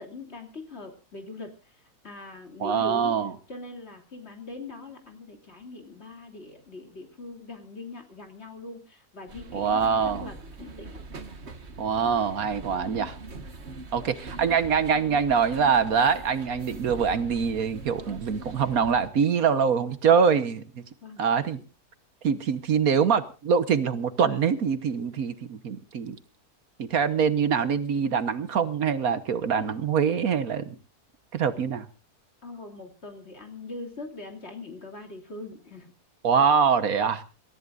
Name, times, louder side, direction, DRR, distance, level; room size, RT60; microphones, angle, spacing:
voice 1, 0.0-1.7 2.0-3.1 3.5-11.0 21.0-21.7 32.4-35.9, left 2 dB, 40° left, 3 dB, 3.3 m, -42 dB
voice 2, 2.6-3.3 9.5-10.3 11.8-13.2 13.9-20.8 21.2-21.6 22.2-26.2 26.8-30.8 31.3-31.9 36.2-37.2, right 6 dB, 65° right, 12 dB, 1.5 m, -24 dB
sound 1, 9.3-19.1, right 3 dB, 45° right, 1.7 m, -42 dB
27.0 x 14.0 x 2.5 m, 0.33 s
omnidirectional pair, 1.6 m